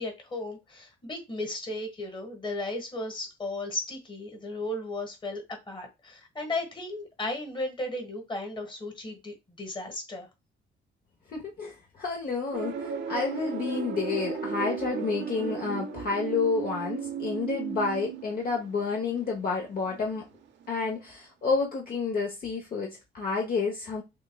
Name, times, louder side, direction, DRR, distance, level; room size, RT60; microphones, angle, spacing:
voice 1, 0.0-10.3, left 2 dB, 25° left, 1.4 m, -35 dB
voice 2, 11.3-20.2 20.7-24.0, left 4 dB, 50° left, 0.9 m, -30 dB
sound 1, 12.5-20.4 20.6-21.0, right 6 dB, 60° right, 0.7 m, -35 dB
6.3 x 2.2 x 2.3 m
cardioid pair, 90°, 20 cm